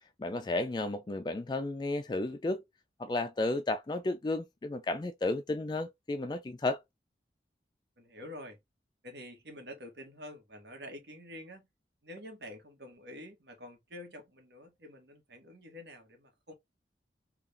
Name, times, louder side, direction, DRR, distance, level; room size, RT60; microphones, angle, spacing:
voice 1, 0.2-2.6 3.0-6.8, left 2 dB, 25° left, 0.3 m, -33 dB
voice 2, 8.0-8.6 9.0-11.7 12.0-16.5, left 1 dB, 70° right, 1.4 m, -48 dB
3.7 x 2.4 x 3.3 m
head